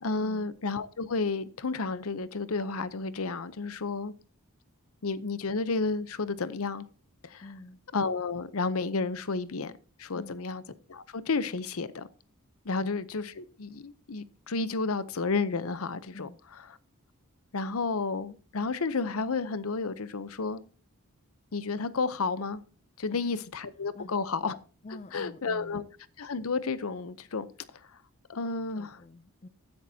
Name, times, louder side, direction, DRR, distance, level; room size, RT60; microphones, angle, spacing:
voice 1, 0.0-4.1 5.0-6.9 7.2-7.5 7.9-9.7 10.0-10.6 10.9-12.1 12.6-16.3 17.5-20.6 21.5-22.6 23.0-24.6 25.1-25.8 26.2-28.0 28.3-29.0, left 4 dB, 75° left, 0.8 m, -31 dB
voice 2, 7.4-7.8 10.1-10.4 12.7-12.9 16.1-16.4 23.1-23.4 23.9-24.2 24.8-25.8 28.7-29.5, left 2 dB, 30° left, 0.4 m, -47 dB
15.0 x 10.5 x 2.8 m
head